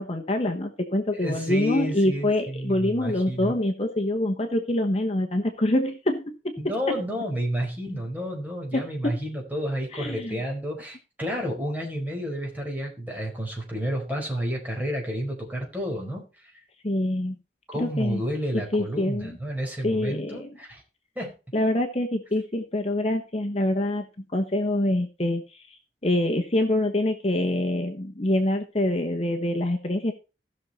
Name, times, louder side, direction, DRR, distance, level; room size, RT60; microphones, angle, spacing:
voice 1, 0.0-6.6 6.9-7.0 8.7-9.1 9.9-10.4 16.8-17.4 17.8-18.2 18.7-19.3 19.8-20.5 21.5-30.1, left 1 dB, 35° left, 4 dB, 1.1 m, -25 dB
voice 2, 1.1-3.6 6.6-16.5 17.7-20.8 21.1-21.3, equal, 10° right, 0 dB, 4.5 m, -31 dB
16.0 x 6.4 x 4.2 m, 0.32 s
head